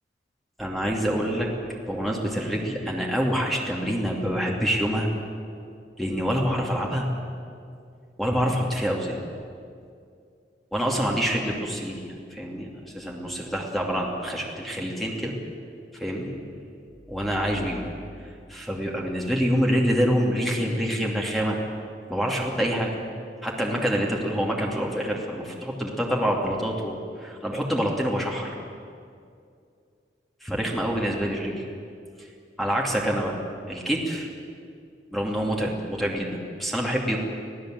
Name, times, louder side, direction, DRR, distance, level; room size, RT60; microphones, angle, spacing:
voice 1, 0.6-1.5 1.9-5.1 6.0-7.1 8.2-9.2 10.7-15.3 15.9-16.3 17.1-17.9 18.5-21.6 22.1-22.9 23.4-28.5 30.4-31.6 32.6-33.4 33.7-34.3 35.1-37.2, equal, ahead, -2 dB, 2.6 m, -26 dB
25.5 x 18.0 x 7.8 m, 2.4 s
head